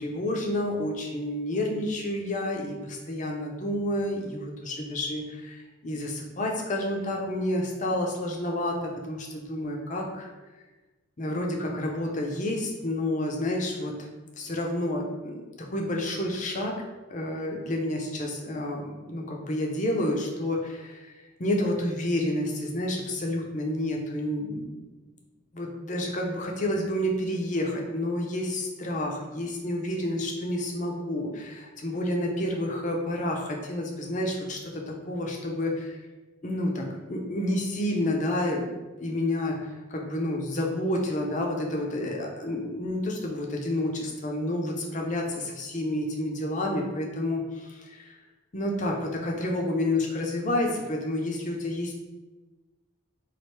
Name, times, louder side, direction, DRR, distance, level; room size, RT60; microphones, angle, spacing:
voice 1, 0.0-10.3 11.2-14.1 14.4-16.8 17.1-21.1 21.4-24.8 25.5-36.0 36.4-38.7 39.0-39.6 39.9-48.1 48.5-51.9, left 1 dB, 35° left, 0 dB, 0.5 m, -29 dB
3.2 x 2.5 x 4.3 m, 1.2 s
head